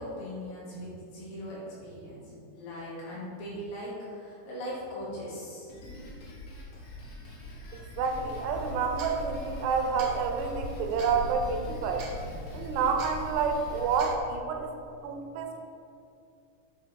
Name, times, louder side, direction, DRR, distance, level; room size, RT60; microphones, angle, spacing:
voice 1, 0.0-2.2 2.5-5.7, equal, 85° left, -7 dB, 4.5 m, -39 dB
Drum kit, 5.7-14.0, left 1 dB, 55° left, 1.7 m, -45 dB
voice 2, 7.7-12.1 12.5-14.7 15.0-15.6, right 5 dB, 90° right, 4 dB, 3.0 m, -29 dB
sound 1, 8.0-14.2, equal, 65° right, 2.1 m, -40 dB
9.4 x 5.6 x 4.7 m, 2.5 s
omnidirectional pair, 4.7 m